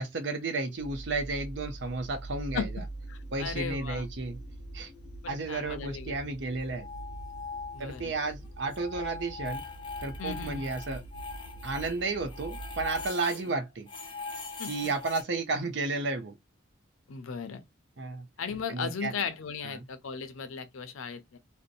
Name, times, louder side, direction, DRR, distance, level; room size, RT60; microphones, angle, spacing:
voice 1, 0.0-2.7 3.3-4.4 4.7-4.9 5.3-6.9 7.8-9.6 10.0-11.0 11.6-13.9 14.6-16.4 18.0-18.3 18.7-19.1 19.6-19.8, right 3 dB, 60° right, 0.6 m, -32 dB
sound 1, 0.8-13.1, right 2 dB, 55° left, 0.9 m, -43 dB
voice 2, 3.1-4.1 5.5-6.2 7.7-8.1 10.2-10.7 14.6-14.7 17.1-17.6 18.4-21.4, left 6 dB, 90° left, 0.5 m, -36 dB
sound 2, 6.6-8.2 8.4-13.5 13.9-15.2, left 4 dB, 25° left, 0.6 m, -42 dB
2.6 x 2.1 x 2.4 m
head